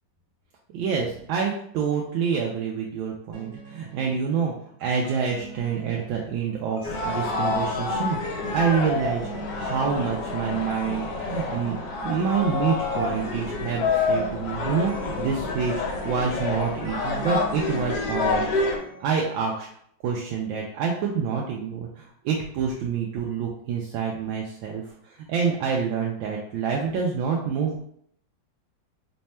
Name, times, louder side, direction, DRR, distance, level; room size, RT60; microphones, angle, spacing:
voice 1, 0.7-4.5 4.8-8.2 8.5-18.5 19.0-19.7 20.0-27.8, right 6 dB, 90° right, -2 dB, 1.3 m, -27 dB
sound 1, 3.3-19.1, right 3 dB, 60° right, 1.3 m, -45 dB
sound 2, 6.8-18.8, left 3 dB, 70° left, 1.1 m, -28 dB
3.4 x 2.2 x 4.2 m, 0.67 s
omnidirectional pair, 2.1 m